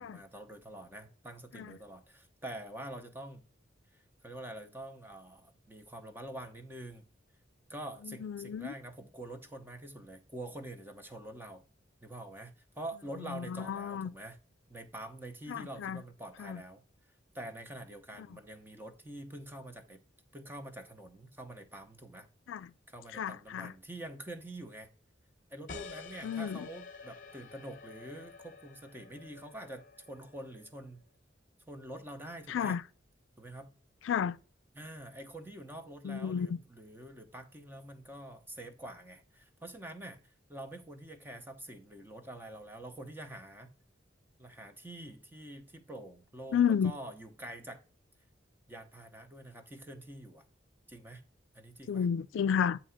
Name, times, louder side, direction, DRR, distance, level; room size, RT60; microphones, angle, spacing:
voice 1, 0.0-3.5 3.9-7.0 7.7-11.7 12.0-14.4 14.7-16.8 17.3-20.0 20.3-22.3 22.9-24.9 25.5-31.0 31.7-32.8 33.4-33.7 34.7-40.2 40.5-43.7 44.4-47.8 48.7-50.4 50.9-51.2 51.5-52.1, right 1 dB, 10° right, 0.7 m, -46 dB
voice 2, 8.0-8.7 13.3-14.1 15.5-16.0 16.4-16.6 22.5-22.7 23.1-23.7 26.2-26.7 32.5-32.8 34.0-34.4 36.0-36.6 46.5-46.9 51.9-52.8, left 7 dB, 85° left, 0.3 m, -32 dB
sound 1, 25.7-30.9, left 4 dB, 45° left, 0.8 m, -50 dB
8.5 x 2.9 x 5.5 m
head